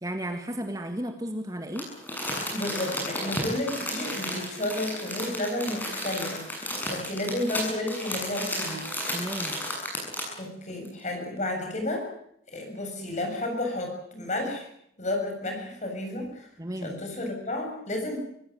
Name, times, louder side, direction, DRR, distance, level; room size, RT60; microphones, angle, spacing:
voice 1, 0.0-1.9 9.1-9.6 16.6-17.0, right 1 dB, 20° right, 6 dB, 1.9 m, -33 dB
Crumpling crinkling, 1.8-10.4 10.9-11.0, left 1 dB, 10° left, 7.6 m, -33 dB
voice 2, 2.5-8.8 10.4-12.1 12.5-14.7 15.0-16.5 16.8-18.2, left 1 dB, 40° left, 4 dB, 7.4 m, -32 dB
25.0 x 16.0 x 9.2 m, 0.71 s
head